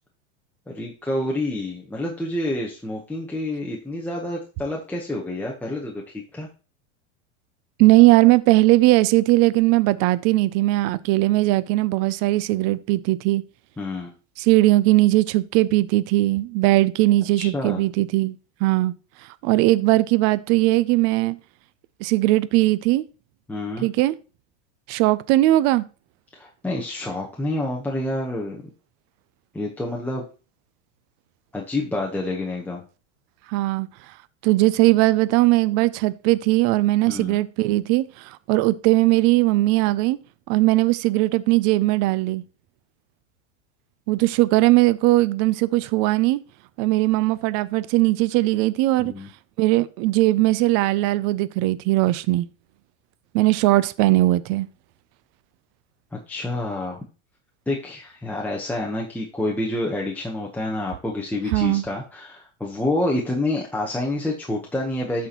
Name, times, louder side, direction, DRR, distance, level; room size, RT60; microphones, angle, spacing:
voice 1, 0.7-6.5 13.8-14.1 17.4-17.8 23.5-23.9 26.3-28.6 29.5-30.2 31.5-32.8 37.1-37.4 49.0-49.3 56.1-57.0 57.7-65.3, left 1 dB, 5° left, 0.9 m, -28 dB
voice 2, 7.8-13.4 14.4-18.4 18.6-18.9 19.4-21.4 22.0-23.0 23.8-24.1 24.9-25.8 33.5-33.9 34.4-38.0 38.5-40.2 40.5-42.4 44.1-46.4 46.8-49.1 49.6-52.5 53.3-54.7 61.5-61.8, right 18 dB, 45° right, 0.5 m, -19 dB
12.5 x 4.3 x 2.9 m
supercardioid pair, 130°, 36 cm